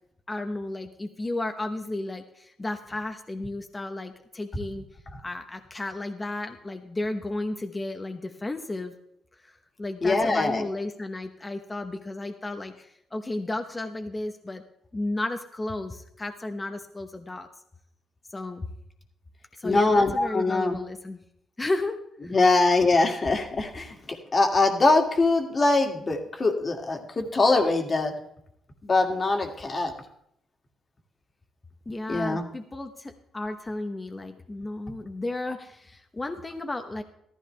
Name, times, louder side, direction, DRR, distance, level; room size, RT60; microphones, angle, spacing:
voice 1, 0.3-4.9 5.2-8.9 9.4-9.5 9.8-14.6 14.9-17.5 18.3-18.7 19.5-21.2 21.6-22.4 31.9-37.0, left 2 dB, 20° left, 6 dB, 1.1 m, -33 dB
voice 2, 10.0-10.7 19.6-20.8 22.3-24.0 24.3-28.1 28.8-29.9 32.1-32.4, left 3 dB, 35° left, 4 dB, 2.2 m, -22 dB
14.5 x 14.0 x 3.4 m, 0.73 s
cardioid pair, 90°, 0 cm